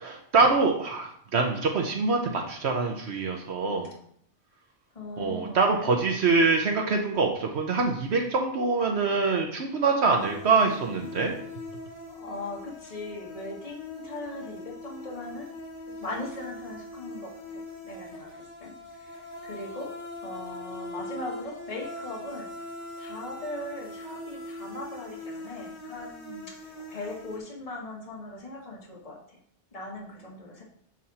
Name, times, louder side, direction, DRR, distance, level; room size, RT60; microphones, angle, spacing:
voice 1, 0.0-3.9 5.2-11.3, right 4 dB, 70° right, 3 dB, 1.0 m, -24 dB
voice 2, 4.9-5.9 12.1-15.5 15.9-19.9 20.2-22.6 23.0-29.4 29.7-30.6, left 2 dB, 30° left, -3 dB, 1.5 m, -39 dB
sound 1, 10.2-27.4, left 1 dB, 45° left, 1.6 m, -42 dB
7.4 x 4.2 x 4.2 m, 0.65 s
omnidirectional pair, 1.2 m